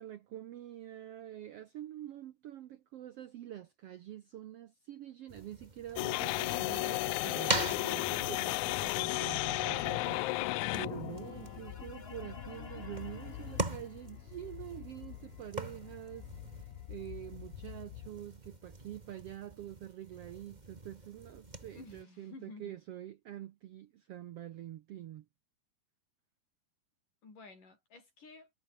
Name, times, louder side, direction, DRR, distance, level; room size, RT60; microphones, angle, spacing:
voice 1, 0.0-10.2 10.8-16.3 16.6-25.3, right 12 dB, 75° right, 1.4 m, -46 dB
sound 1, 5.3-22.0, right 2 dB, 15° right, 1.8 m, -43 dB
sound 2, 6.0-18.1, left 21 dB, 90° left, 1.6 m, -36 dB
sound 3, 10.8-18.8, left 4 dB, 40° left, 0.9 m, -54 dB
voice 2, 21.7-22.8 27.2-28.5, left 3 dB, 70° left, 9.3 m, -53 dB
omnidirectional pair, 3.9 m